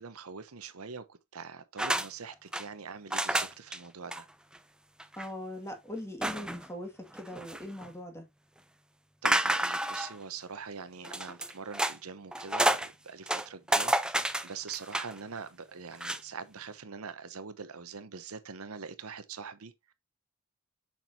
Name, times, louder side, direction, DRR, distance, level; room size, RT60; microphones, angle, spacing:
voice 1, 0.0-4.3 9.2-19.9, right 5 dB, 85° right, 0.9 m, -43 dB
sound 1, 1.8-2.1 2.3-2.7 3.1-3.8 4.1-4.2 4.5-4.6 5.0-5.3 6.2-6.7 7.1-7.9 9.3-10.2 11.0-12.0 12.3-12.9 13.3-15.2 15.9-16.2, right 1 dB, 5° right, 0.5 m, -30 dB
voice 2, 5.2-8.3, left 1 dB, 15° left, 2.0 m, -41 dB
7.4 x 6.0 x 2.7 m
head